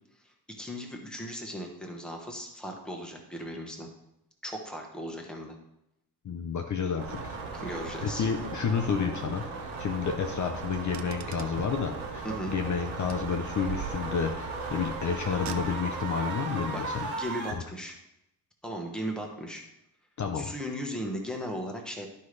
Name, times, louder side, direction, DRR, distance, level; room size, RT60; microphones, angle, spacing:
voice 1, 0.2-3.9 4.4-5.5 7.5-8.2 12.2-12.5 16.7-18.0 18.6-19.6 20.3-22.1, equal, ahead, 1 dB, 1.1 m, -37 dB
voice 2, 6.2-17.1 17.5-17.6 20.2-20.5, left 6 dB, 45° left, 4 dB, 0.7 m, -31 dB
sound 1, 7.0-17.5, right 4 dB, 75° right, 1.6 m, -36 dB
Car, 10.6-11.9 13.1-14.4 15.3-16.1, right 10 dB, 45° right, 0.4 m, -41 dB
12.0 x 5.5 x 3.2 m, 0.84 s
wide cardioid pair, 175°, 42 cm